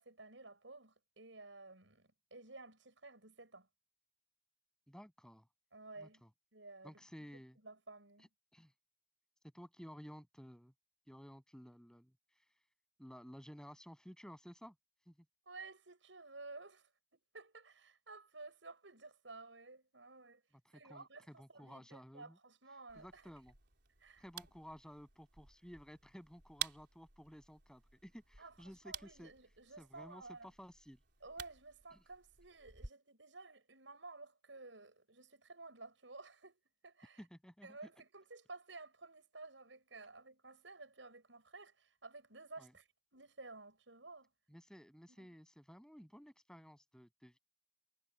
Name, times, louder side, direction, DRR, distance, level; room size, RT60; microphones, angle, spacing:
voice 1, 0.0-3.7 5.7-6.2 6.5-7.0 7.3-8.3 15.5-20.4 20.7-23.2 24.0-24.8 28.4-30.5 31.2-37.2 37.6-44.3 45.2-45.3, right 3 dB, 85° right, 7.0 m, -54 dB
voice 2, 4.9-5.5 6.0-6.3 6.8-7.6 8.5-8.7 9.5-10.7 11.1-12.1 13.0-14.7 15.1-15.2 20.6-22.4 22.9-23.5 24.2-29.3 29.8-31.0 37.2-37.8 42.6-42.7 44.5-47.4, equal, 5° left, 7.9 m, -55 dB
sound 1, 22.9-32.9, right 9 dB, 65° right, 4.0 m, -51 dB
head